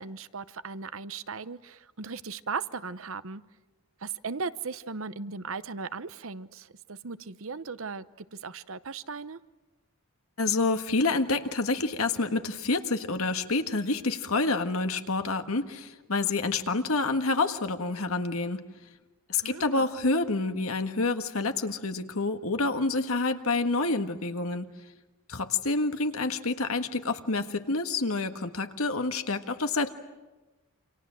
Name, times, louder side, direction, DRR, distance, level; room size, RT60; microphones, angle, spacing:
voice 1, 0.0-3.4 4.0-8.0 8.4-9.4 19.4-19.9, right 4 dB, 65° right, 15 dB, 0.9 m, -37 dB
voice 2, 10.4-18.6 19.3-24.6 25.3-29.9, left 3 dB, 70° left, 7 dB, 1.7 m, -28 dB
28.5 x 26.5 x 7.6 m, 1.2 s
head